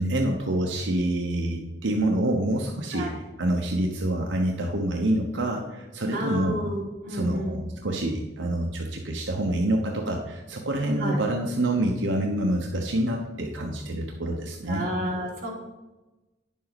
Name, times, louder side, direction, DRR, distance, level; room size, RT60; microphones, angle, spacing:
voice 1, 0.0-3.1 3.4-6.5 7.1-14.8, right 1 dB, 90° right, 1 dB, 1.1 m, -27 dB
voice 2, 6.1-7.6 11.0-11.2 14.7-15.5, equal, 50° right, -4 dB, 3.3 m, -30 dB
10.0 x 7.4 x 4.1 m, 1.1 s
head